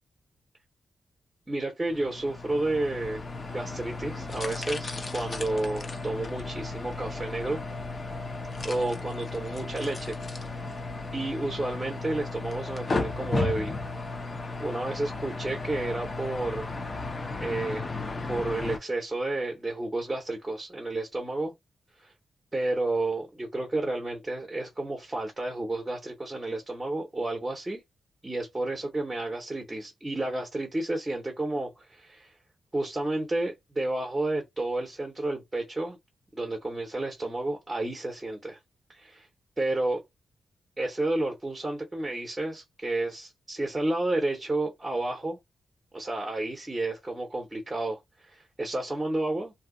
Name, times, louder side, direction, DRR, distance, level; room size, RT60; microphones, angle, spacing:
voice 1, 1.5-3.2 3.5-7.6 8.6-10.2 10.5-10.8 11.1-13.7 14.6-16.7 17.4-17.9 18.3-21.5 22.0-22.1 22.5-27.8 28.2-32.3 32.7-36.0 36.3-38.6 38.9-39.3 39.6-40.0 40.8-45.4 45.9-49.5, right 2 dB, 10° right, 0.7 m, -31 dB
sound 1, 1.9-18.8, left 3 dB, 30° left, 0.4 m, -34 dB
2.6 x 2.2 x 3.6 m
wide cardioid pair, 175°, 0 cm